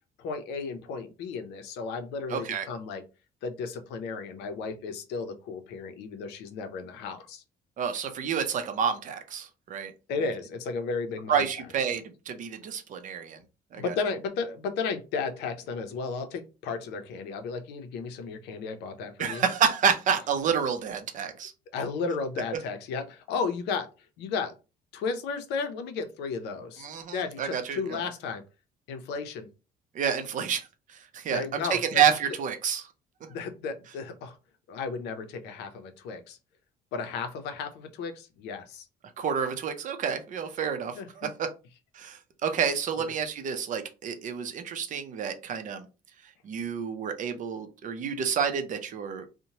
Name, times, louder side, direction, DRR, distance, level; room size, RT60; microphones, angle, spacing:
voice 1, 0.2-3.0 3.4-7.4 10.1-11.4 13.7-19.4 21.7-23.9 24.2-24.5 24.9-26.9 27.1-28.4 28.9-29.5 31.3-32.1 33.3-34.4 34.7-36.4 36.9-38.9 40.9-41.3 43.0-43.1, left 4 dB, 85° left, 8 dB, 0.5 m, -34 dB
voice 2, 2.3-2.7 7.8-9.9 11.3-13.4 13.7-13.9 19.2-21.5 26.8-28.0 29.9-32.9 39.2-41.5 41.9-45.9 46.4-49.3, right 7 dB, 50° right, 8 dB, 0.5 m, -29 dB
2.9 x 2.1 x 2.7 m, 0.30 s
cardioid pair, 110°, 17 cm